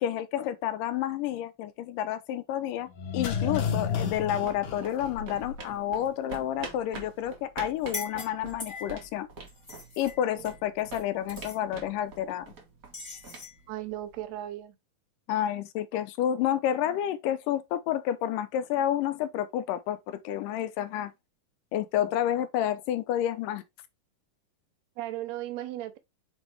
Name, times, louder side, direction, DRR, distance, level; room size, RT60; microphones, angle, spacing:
voice 1, 0.0-9.3 10.0-12.5 15.3-21.1 21.7-23.6, left 11 dB, 75° left, 2.3 m, -30 dB
sound 1, 2.9-5.8 6.1-6.2, left 7 dB, 60° left, 2.2 m, -31 dB
sound 2, 3.9-14.4, right 3 dB, 50° right, 1.0 m, -46 dB
sound 3, 7.8-9.0 9.5-11.0 11.3-11.6 12.9-13.6, left 4 dB, 30° left, 0.9 m, -41 dB
voice 2, 13.7-14.8 25.0-26.0, right 14 dB, 70° right, 1.7 m, -36 dB
6.9 x 4.5 x 3.3 m
omnidirectional pair, 4.0 m